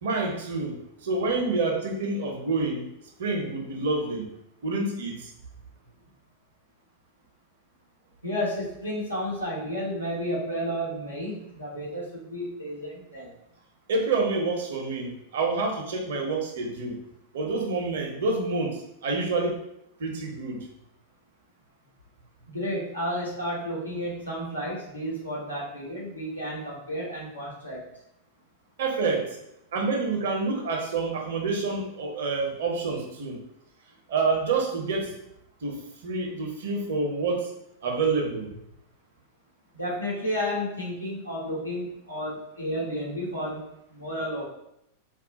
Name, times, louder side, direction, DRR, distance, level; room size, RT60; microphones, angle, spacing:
voice 1, 0.0-2.9 3.2-4.3 4.6-5.3 13.9-17.0 17.3-19.6 20.0-20.7 28.8-29.4 29.7-33.4 34.1-35.1 35.6-37.5 37.8-38.6, right 3 dB, 60° right, 1 dB, 0.6 m, -28 dB
voice 2, 8.2-13.3 22.5-27.8 39.7-43.6 43.9-44.4, equal, 85° left, -6 dB, 1.0 m, -32 dB
2.3 x 2.1 x 3.8 m, 0.79 s
figure-of-eight pair, 90°, 0 cm